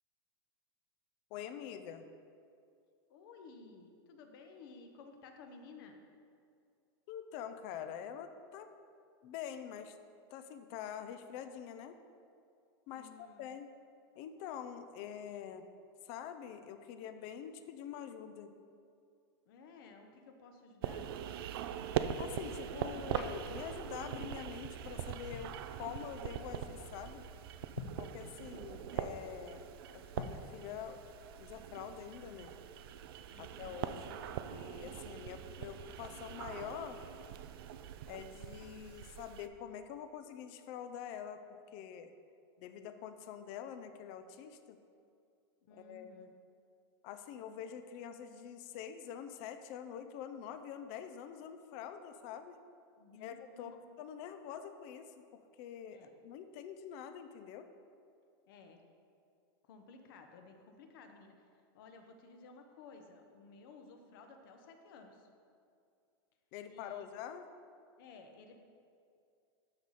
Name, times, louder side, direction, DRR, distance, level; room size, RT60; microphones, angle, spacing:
voice 1, 1.3-2.0 7.1-8.7 9.2-10.0 10.3-11.9 12.9-13.7 14.2-15.7 16.0-18.5 22.2-27.2 28.0-31.0 31.4-32.5 33.4-34.1 34.5-37.0 38.1-42.1 42.6-44.8 45.7-46.3 47.0-52.6 53.1-55.2 55.6-57.7 66.5-67.5, left 8 dB, 45° left, 9 dB, 0.6 m, -46 dB
voice 2, 3.1-6.0 12.9-13.5 19.5-21.3 33.3-33.7 45.6-46.3 53.0-53.9 55.9-56.2 58.5-58.8 59.6-61.3 61.7-65.3 66.7-67.0 68.0-68.6, left 4 dB, 60° left, 5 dB, 1.0 m, -55 dB
sound 1, 20.8-39.5, right 9 dB, 65° right, 0.5 m, -42 dB
sound 2, 21.1-23.9 24.2-24.5 25.1-25.6 27.6-28.1 30.0-30.5, left 4 dB, 85° left, 1.1 m, -50 dB
12.5 x 4.8 x 4.2 m, 2.4 s
supercardioid pair, 150°, 13 cm